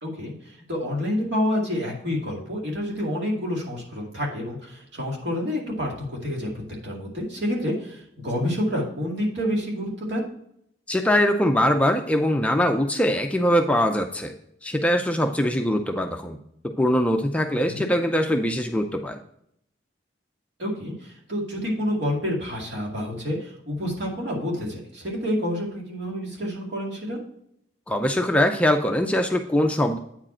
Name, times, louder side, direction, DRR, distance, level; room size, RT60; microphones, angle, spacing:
voice 1, 0.0-6.5 6.8-10.2 17.7-17.9 20.6-27.2, left 1 dB, 65° right, -2 dB, 2.3 m, -28 dB
voice 2, 10.9-14.3 14.6-16.4 16.6-19.2 27.9-30.0, equal, 5° left, 4 dB, 0.4 m, -22 dB
8.7 x 5.0 x 4.3 m, 0.72 s
head